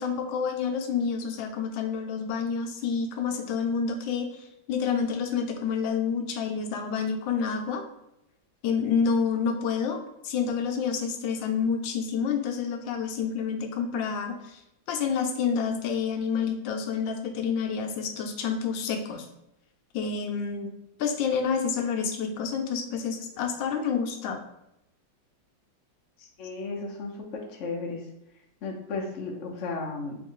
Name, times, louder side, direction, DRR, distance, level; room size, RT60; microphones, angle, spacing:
voice 1, 0.0-7.8 8.6-14.6 14.9-19.2 19.9-20.7 21.0-24.4, left 6 dB, 85° left, 4 dB, 1.3 m, -28 dB
voice 2, 26.2-28.0 28.6-30.2, left 3 dB, 55° left, 0 dB, 0.8 m, -34 dB
3.4 x 3.1 x 3.7 m, 0.85 s
omnidirectional pair, 2.0 m